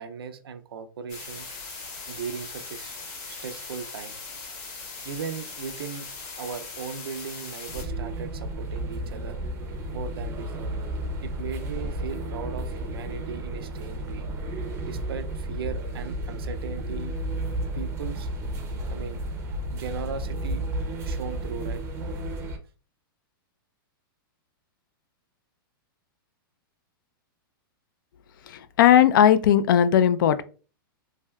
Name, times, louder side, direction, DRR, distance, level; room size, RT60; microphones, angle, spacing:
voice 1, 0.0-1.5 2.1-3.0 3.2-4.2 5.0-6.1 6.4-9.4 9.9-10.7 11.2-14.3 14.8-17.1 17.7-18.3 18.9-19.2 19.7-20.6 21.0-21.8, right 6 dB, 85° right, 0.5 m, -37 dB
sound 1, 1.1-7.8, left 4 dB, 45° left, 1.5 m, -39 dB
sound 2, 7.7-22.6, right 1 dB, 20° right, 0.5 m, -32 dB
voice 2, 28.5-30.4, left 10 dB, 65° left, 0.4 m, -18 dB
3.3 x 2.7 x 2.2 m
hypercardioid pair, 150°, 12 cm